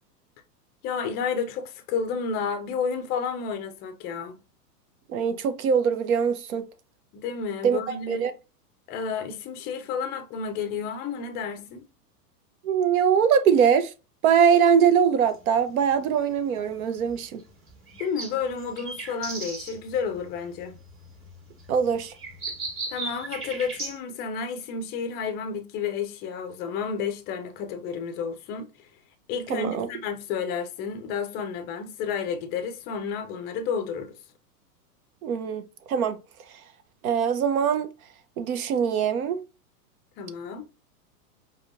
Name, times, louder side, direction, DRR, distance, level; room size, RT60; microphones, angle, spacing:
voice 1, 0.8-4.4 7.1-8.3 8.9-11.9 18.0-20.7 22.9-28.7 29.3-34.2 40.2-40.6, left 6 dB, 20° left, 0.4 m, -31 dB
voice 2, 5.1-6.6 7.6-7.8 8.1-8.3 12.6-13.9 14.2-17.4 21.7-22.1 29.5-29.9 35.2-35.6 35.9-36.2 37.0-37.9 38.4-39.4, right 7 dB, 60° right, 0.7 m, -22 dB
sound 1, 15.3-24.0, right 3 dB, 25° right, 1.5 m, -38 dB
4.9 x 2.3 x 2.5 m
hypercardioid pair, 115°, 48 cm